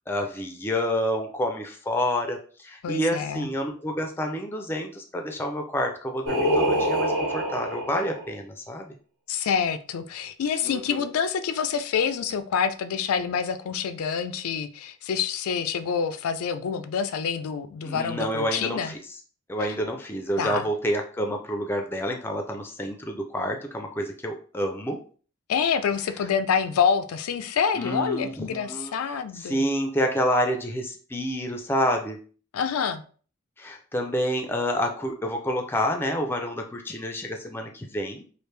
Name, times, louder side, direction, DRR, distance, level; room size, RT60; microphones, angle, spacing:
voice 1, 0.1-8.9 10.6-11.0 17.8-19.0 19.5-25.0 27.7-28.9 29.3-32.2 33.6-38.2, equal, 10° left, 3 dB, 0.4 m, -28 dB
voice 2, 2.8-3.5 9.3-18.9 20.4-20.7 25.5-29.6 32.5-33.0, left 6 dB, 85° left, 10 dB, 0.4 m, -27 dB
Singing, 6.3-8.3, equal, 70° right, 1.2 m, -25 dB
3.2 x 2.5 x 3.2 m, 0.41 s
head